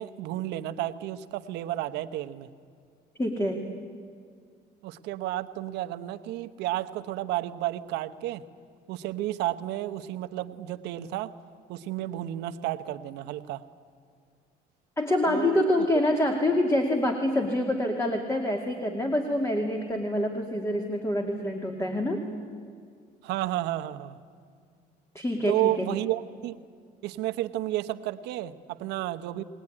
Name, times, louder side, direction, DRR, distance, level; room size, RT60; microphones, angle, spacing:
voice 1, 0.0-2.5 4.8-8.4 8.9-11.3 11.7-13.6 15.3-15.9 23.2-24.2 25.5-26.6 27.0-29.4, right 14 dB, 90° right, 9 dB, 0.9 m, -32 dB
voice 2, 3.2-3.6 15.0-22.2 25.1-25.9, left 1 dB, 15° left, 3 dB, 2.2 m, -26 dB
21.5 x 18.5 x 9.9 m, 2.1 s
cardioid pair, 110°, 17 cm